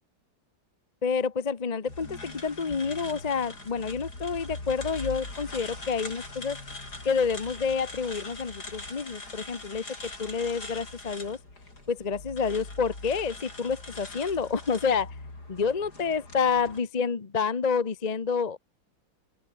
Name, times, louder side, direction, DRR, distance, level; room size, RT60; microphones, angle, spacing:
voice 1, 1.0-6.6 7.0-11.4 11.9-15.1 15.5-18.6, left 5 dB, 30° left, 0.7 m, -28 dB
sound 1, 1.9-16.8, left 2 dB, 50° left, 6.8 m, -41 dB
open air
omnidirectional pair, 2.2 m